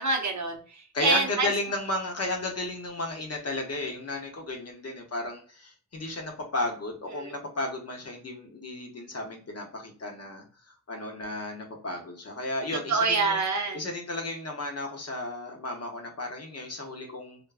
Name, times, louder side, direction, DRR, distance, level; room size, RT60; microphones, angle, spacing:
voice 1, 0.0-1.5 7.2-7.3 12.9-13.8, right 3 dB, 50° right, 3 dB, 0.6 m, -26 dB
voice 2, 0.9-10.4 10.9-13.4 13.7-17.4, left 2 dB, 40° left, 2 dB, 0.7 m, -34 dB
2.5 x 2.3 x 2.3 m, 0.42 s
wide cardioid pair, 85°, 37 cm